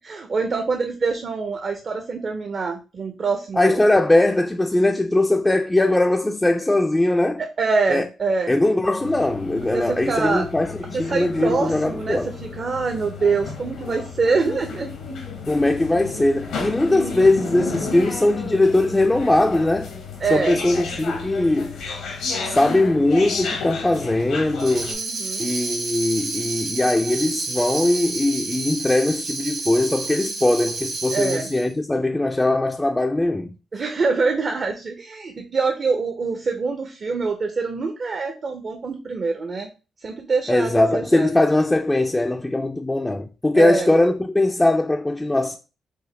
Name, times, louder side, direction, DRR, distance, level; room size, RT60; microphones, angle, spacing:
voice 1, 0.0-3.8 7.4-8.5 9.7-10.5 10.9-14.9 16.9-17.1 20.2-20.6 24.8-25.5 31.1-31.5 33.7-39.7 40.0-41.3 43.5-43.9, right 4 dB, 45° right, 0.6 m, -25 dB
voice 2, 3.6-7.4 7.9-8.1 8.5-12.3 15.5-19.9 20.3-21.8 22.4-25.0 25.4-33.6 40.5-45.6, left 2 dB, 15° left, 0.3 m, -20 dB
sound 1, 9.0-24.9, left 4 dB, 85° left, 1.2 m, -33 dB
Tambourine, 24.6-31.7, right 3 dB, 65° right, 1.3 m, -30 dB
4.6 x 2.2 x 3.3 m
cardioid pair, 85°, 0 cm